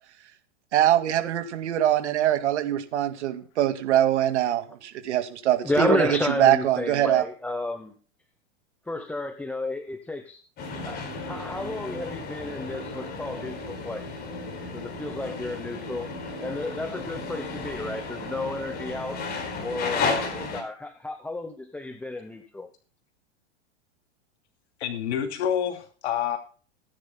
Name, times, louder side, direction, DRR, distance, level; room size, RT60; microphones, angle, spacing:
voice 1, 0.7-7.3, right 11 dB, 80° right, 7 dB, 2.3 m, -23 dB
voice 2, 5.6-8.0 8.9-10.4 10.8-14.1 14.7-16.1 16.4-19.3 19.6-22.7, left 2 dB, 5° left, 7 dB, 0.9 m, -32 dB
sound 1, 10.6-20.6, left 4 dB, 30° left, 4.3 m, -33 dB
voice 3, 24.8-26.4, left 9 dB, 75° left, 3 dB, 2.8 m, -27 dB
20.5 x 10.5 x 2.2 m, 0.38 s
supercardioid pair, 140°, 34 cm